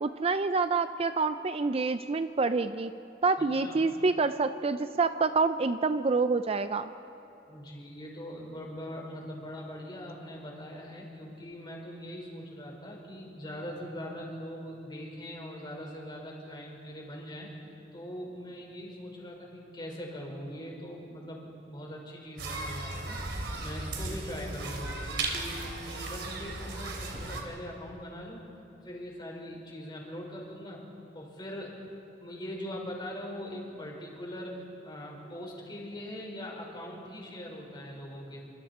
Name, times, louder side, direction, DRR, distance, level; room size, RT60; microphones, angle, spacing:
voice 1, 0.0-2.9 3.2-6.9, right 4 dB, 35° right, 10 dB, 0.5 m, -27 dB
voice 2, 7.5-17.5 17.9-28.5 28.8-30.9 31.1-31.8 32.2-38.5, equal, 25° left, -1 dB, 4.8 m, -41 dB
sound 1, 22.4-27.4, right 2 dB, 80° right, 3.1 m, -36 dB
28.5 x 25.5 x 4.3 m, 2.8 s
head